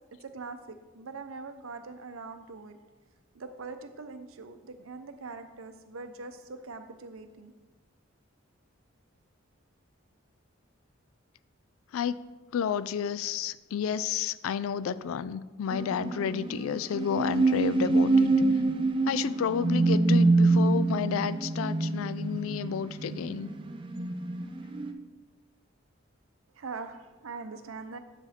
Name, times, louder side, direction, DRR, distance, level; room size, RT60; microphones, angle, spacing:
voice 1, 0.2-2.8 3.3-7.5 26.5-28.0, right 4 dB, 90° right, 8 dB, 0.6 m, -42 dB
voice 2, 12.5-18.3 19.1-23.5, left 8 dB, 80° left, 16 dB, 0.3 m, -31 dB
sound 1, 15.7-24.9, right 3 dB, 25° right, 0.4 m, -26 dB
7.9 x 4.9 x 4.3 m, 1.2 s
head